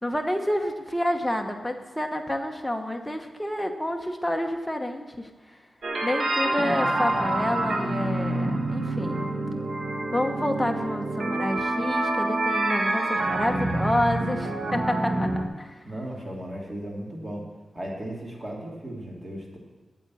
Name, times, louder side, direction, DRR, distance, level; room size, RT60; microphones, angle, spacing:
voice 1, 0.0-5.3 6.0-9.2 10.1-15.8, left 1 dB, 5° left, 3 dB, 1.1 m, -29 dB
sound 1, 5.8-15.4, right 2 dB, 55° right, 1.4 m, -27 dB
voice 2, 15.8-17.5 17.7-19.6, right 1 dB, 25° right, -2 dB, 2.6 m, -36 dB
8.9 x 8.3 x 7.6 m, 1.3 s
wide cardioid pair, 115°, 0 cm